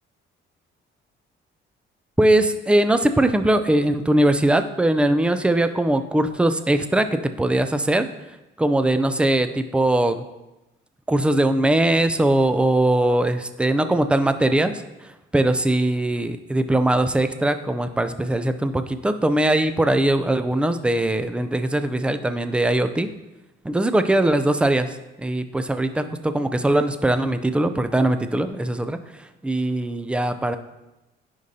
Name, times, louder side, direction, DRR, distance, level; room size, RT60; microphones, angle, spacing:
voice 1, 2.2-8.1 8.6-10.2 11.1-14.7 15.3-23.1 23.6-29.0 29.4-30.6, right 1 dB, 5° right, 9 dB, 0.3 m, -21 dB
9.4 x 5.2 x 2.7 m, 0.99 s
cardioid pair, 125°, 21 cm